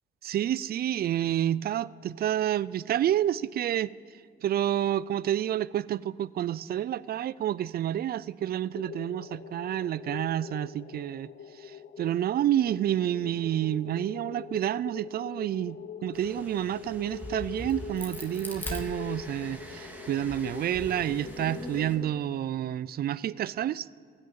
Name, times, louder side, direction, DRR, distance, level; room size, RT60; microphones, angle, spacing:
voice 1, 0.2-3.9 4.4-11.3 11.6-11.7 12.0-23.9, right 11 dB, 50° right, 20 dB, 0.4 m, -29 dB
sound 1, 8.7-22.1, left 7 dB, 50° left, 0.6 m, -43 dB
sound 2, 16.1-22.0, equal, 10° right, 2.2 m, -46 dB
Crack, 16.9-19.6 20.1-21.8, left 1 dB, 10° left, 2.0 m, -41 dB
15.5 x 6.6 x 9.0 m, 2.2 s
cardioid pair, 90°, 20 cm